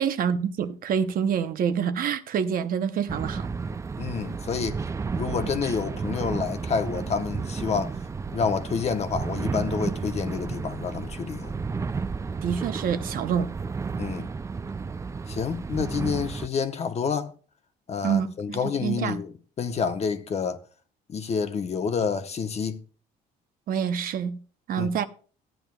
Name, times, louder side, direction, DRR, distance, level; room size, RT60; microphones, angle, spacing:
voice 1, 0.0-3.5 12.4-13.5 18.0-19.2 23.7-24.4 24.7-25.0, right 7 dB, 60° right, 0.8 m, -27 dB
sound 1, 3.1-16.5, right 4 dB, 15° right, 0.3 m, -32 dB
voice 2, 4.0-4.8 5.1-7.9 8.3-11.5 14.0-14.3 15.3-17.3 17.9-19.3 19.6-20.6 21.1-22.8 24.8-24.9, left 6 dB, 40° left, 0.9 m, -28 dB
14.5 x 9.0 x 2.3 m
cardioid pair, 110°, 17 cm